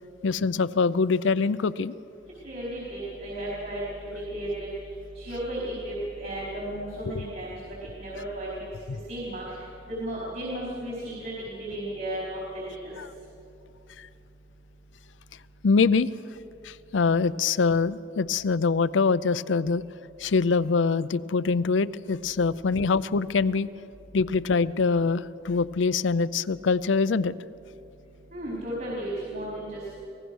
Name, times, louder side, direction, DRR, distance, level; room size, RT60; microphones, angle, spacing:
voice 1, 0.2-1.9 7.1-7.2 15.6-16.1 16.6-19.8 20.2-23.7 24.1-27.3, left 4 dB, 80° left, 16 dB, 0.5 m, -24 dB
voice 2, 2.4-3.8 4.3-4.7 5.2-7.6 8.0-8.5 9.1-9.6 9.9-12.9 28.3-29.9, right 1 dB, 50° right, -5 dB, 4.8 m, -34 dB
25.0 x 18.0 x 6.3 m, 2.7 s
head